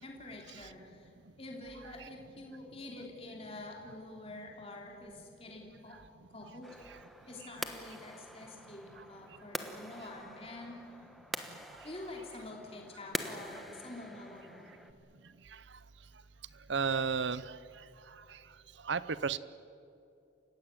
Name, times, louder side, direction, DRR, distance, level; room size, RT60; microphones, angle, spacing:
voice 1, 0.0-1.1 1.4-6.0 6.3-11.1 11.8-14.8, left 2 dB, 30° left, 0 dB, 3.2 m, -47 dB
sound 1, 6.6-14.9, equal, ahead, 1.1 m, -45 dB
voice 2, 16.7-17.4 18.9-19.4, right 5 dB, 65° right, 17 dB, 0.7 m, -31 dB
29.0 x 16.5 x 9.1 m, 2.7 s
head